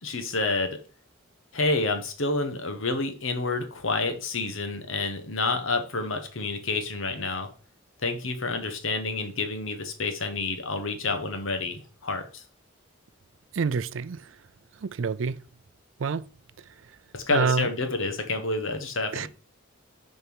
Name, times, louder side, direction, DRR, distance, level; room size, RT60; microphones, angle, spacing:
voice 1, 0.0-0.8 1.5-7.5 8.0-12.4 17.1-19.3, left 3 dB, 80° left, 1.4 m, -29 dB
voice 2, 13.5-14.2 14.8-15.4 16.0-16.2 17.3-17.7 19.1-19.3, right 5 dB, 70° right, 0.4 m, -27 dB
6.6 x 4.4 x 6.2 m
head